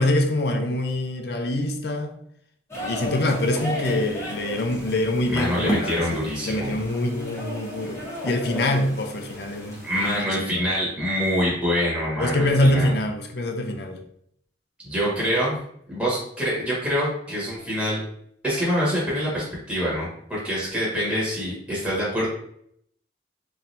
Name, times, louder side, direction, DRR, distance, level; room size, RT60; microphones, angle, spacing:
voice 1, 0.0-2.1 2.8-9.8 10.1-10.6 12.2-14.0, left 1 dB, 65° left, 0.5 m, -25 dB
sound 1, 2.7-10.2, equal, 15° left, 1.1 m, -34 dB
voice 2, 5.3-6.7 9.8-12.9 14.8-15.5 15.9-18.0 18.4-22.3, equal, 5° right, 1.4 m, -25 dB
4.2 x 3.2 x 2.7 m
head